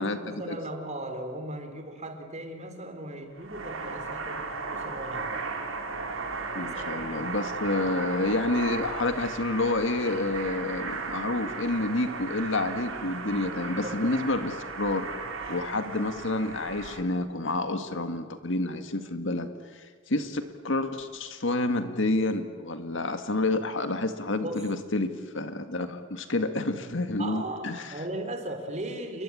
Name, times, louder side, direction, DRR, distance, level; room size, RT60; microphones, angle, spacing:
voice 1, 0.0-5.5 6.6-7.1 13.6-14.0 24.4-24.7 27.2-29.2, right 1 dB, 35° right, 6 dB, 3.9 m, -37 dB
sound 1, 3.4-17.0, right 4 dB, 85° right, 3.9 m, -36 dB
voice 2, 6.5-15.1 15.5-19.8 20.1-27.9, left 2 dB, 70° left, 8 dB, 2.0 m, -29 dB
29.5 x 23.0 x 8.8 m, 1.5 s
head